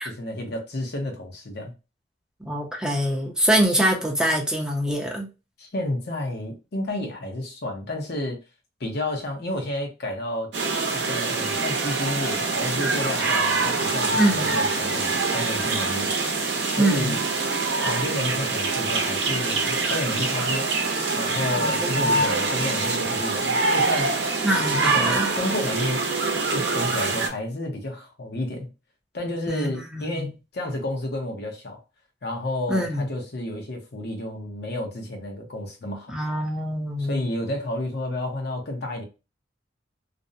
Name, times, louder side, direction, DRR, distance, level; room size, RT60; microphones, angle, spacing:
voice 1, 0.0-1.7 5.6-8.4 8.8-10.5 10.9-16.4 16.7-17.2 17.8-20.7 21.2-24.1 24.8-26.0 26.5-28.7 29.1-31.8 32.2-36.2 37.0-39.0, left 1 dB, 60° left, 0.7 m, -31 dB
voice 2, 2.4-5.3 14.2-14.5 16.8-17.2 21.5-22.3 24.4-25.3 29.5-30.3 32.7-33.1 36.1-37.2, right 1 dB, 5° right, 0.5 m, -24 dB
sound 1, 10.5-27.3, right 3 dB, 70° right, 0.6 m, -24 dB
2.5 x 2.1 x 2.5 m
head